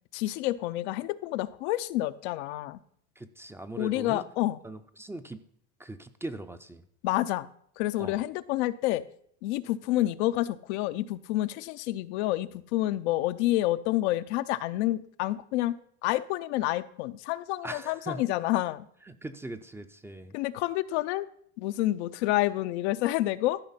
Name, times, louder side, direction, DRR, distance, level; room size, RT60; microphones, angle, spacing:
voice 1, 0.1-2.8 3.8-4.6 7.0-7.5 7.8-9.0 9.4-18.9 20.3-21.3 21.6-23.6, left 16 dB, 85° left, 12 dB, 0.6 m, -29 dB
voice 2, 3.2-4.3 4.6-5.4 5.8-6.8 8.0-8.2 17.6-18.2 19.1-20.4, right 1 dB, 10° right, 10 dB, 0.4 m, -40 dB
13.0 x 5.2 x 5.6 m, 0.65 s
supercardioid pair, 130°, 33 cm